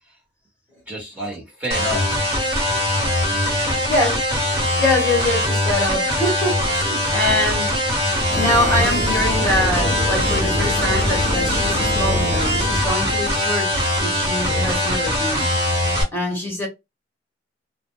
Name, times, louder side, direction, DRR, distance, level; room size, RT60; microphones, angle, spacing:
voice 1, 0.9-2.0 3.3-3.8 7.3-7.7, left 1 dB, 10° right, 1.1 m, -31 dB
sound 1, 1.7-16.0, left 1 dB, 30° right, 1.3 m, -21 dB
voice 2, 3.9-4.2 4.8-7.7 8.3-15.5 16.1-16.7, left 1 dB, 15° left, 1.1 m, -24 dB
sound 2, 8.3-13.4, left 1 dB, 45° left, 0.7 m, -26 dB
2.2 x 2.1 x 3.1 m
head